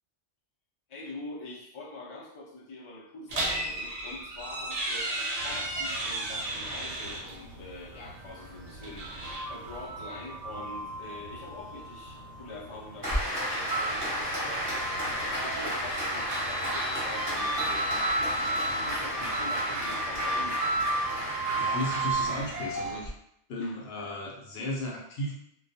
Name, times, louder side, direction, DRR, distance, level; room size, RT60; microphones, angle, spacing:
voice 1, 0.9-20.6 23.6-23.8, left 2 dB, 40° left, -5 dB, 0.5 m, -45 dB
sound 1, 3.3-7.4 8.7-9.8, right 1 dB, 50° right, 0.5 m, -34 dB
sound 2, 5.4-22.9, right 2 dB, 70° right, 0.8 m, -35 dB
Applause, 13.0-23.1, equal, 15° right, 1.0 m, -33 dB
voice 2, 21.3-23.1 23.5-25.3, left 1 dB, 65° left, -3 dB, 0.9 m, -35 dB
2.3 x 2.3 x 2.6 m, 0.72 s
omnidirectional pair, 1.2 m